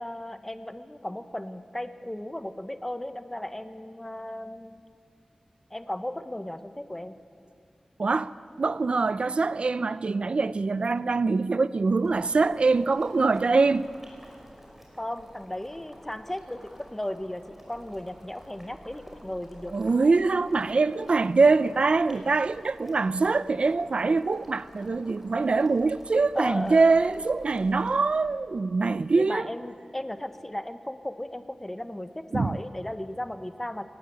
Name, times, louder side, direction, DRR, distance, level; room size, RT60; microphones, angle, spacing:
voice 1, 0.0-4.8 5.7-7.2 15.0-19.7 26.3-27.0 29.1-33.9, left 1 dB, 15° left, 1.1 m, -35 dB
voice 2, 8.0-8.3 8.6-13.9 19.7-29.5 32.3-32.6, right 4 dB, 65° right, 0.6 m, -24 dB
Boiling, 12.0-28.2, equal, 10° right, 5.9 m, -51 dB
22.0 x 19.0 x 8.5 m
wide cardioid pair, 75°, 2 cm